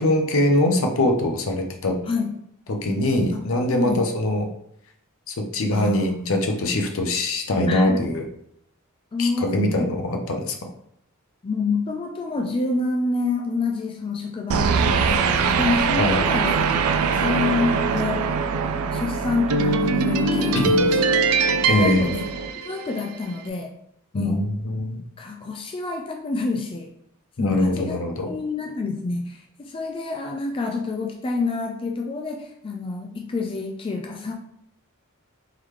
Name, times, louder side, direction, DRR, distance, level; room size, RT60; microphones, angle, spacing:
voice 1, 0.0-2.0 2.7-4.5 5.3-8.2 9.2-10.5 16.0-16.2 20.5-20.8 21.7-22.2 24.1-25.0 27.4-28.3, left 1 dB, 65° left, 4 dB, 0.7 m, -22 dB
voice 2, 3.3-4.1 5.7-6.4 7.7-8.1 9.1-9.9 11.4-16.7 17.1-18.3 18.9-21.0 21.7-22.2 22.6-23.7 24.1-24.4 25.2-26.9 27.4-28.0 28.3-34.3, left 3 dB, 25° left, 1 dB, 0.3 m, -28 dB
sound 1, 14.5-23.0, right 4 dB, 75° right, 0.4 m, -22 dB
3.8 x 3.1 x 3.2 m, 0.72 s
head